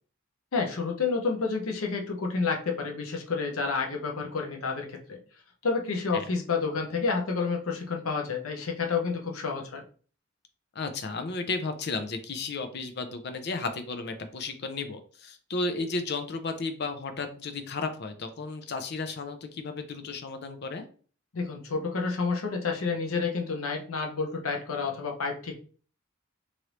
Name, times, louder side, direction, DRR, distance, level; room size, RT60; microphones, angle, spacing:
voice 1, 0.5-5.2 5.6-9.8 21.3-25.6, left 4 dB, 85° left, 2 dB, 0.7 m, -29 dB
voice 2, 10.7-20.8, left 3 dB, 50° left, 7 dB, 0.5 m, -33 dB
3.2 x 2.6 x 2.9 m, 0.41 s
head